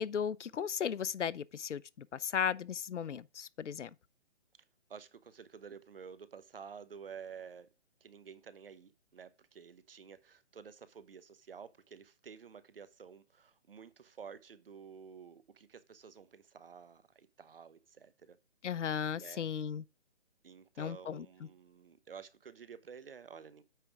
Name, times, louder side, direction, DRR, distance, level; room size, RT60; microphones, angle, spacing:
voice 1, 0.0-3.9 18.6-19.8 20.8-21.3, left 7 dB, 90° left, 0.7 m, -36 dB
voice 2, 4.9-7.7 8.0-18.4 19.2-19.4 20.4-23.6, right 6 dB, 55° right, 0.9 m, -51 dB
9.0 x 3.4 x 5.9 m
hypercardioid pair, 170°, 35 cm